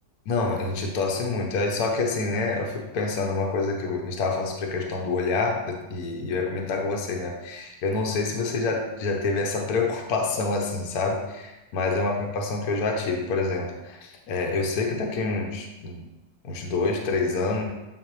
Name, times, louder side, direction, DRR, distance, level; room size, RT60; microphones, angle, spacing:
voice 1, 0.3-16.0 16.4-17.6, left 3 dB, 60° left, 1 dB, 1.1 m, -27 dB
8.0 x 3.9 x 3.1 m, 1.0 s
omnidirectional pair, 2.1 m